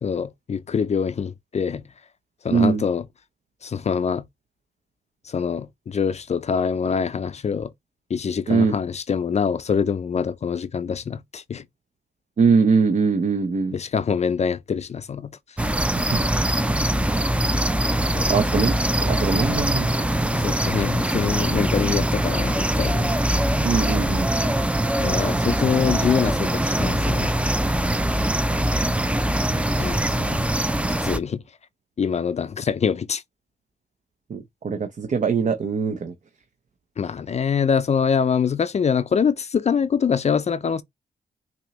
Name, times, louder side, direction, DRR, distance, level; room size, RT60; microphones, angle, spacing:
voice 1, 0.0-1.8 2.4-3.0 3.6-4.2 5.3-7.7 8.1-11.6 13.7-15.3 18.1-18.3 20.3-23.1 25.0-27.3 29.8-30.4 31.0-31.4 32.0-33.2 37.0-40.8, left 6 dB, 45° left, 0.4 m, -24 dB
voice 2, 2.5-2.8 8.5-8.7 12.4-13.8 16.1-16.2 18.3-18.7 19.0-20.1 20.4-20.5 23.6-24.3 29.8-29.9 34.3-36.1, right 5 dB, 50° right, 0.7 m, -22 dB
sound 1, 15.6-31.2, right 1 dB, 5° right, 0.5 m, -22 dB
6.0 x 2.9 x 3.0 m
cardioid pair, 75°, 16 cm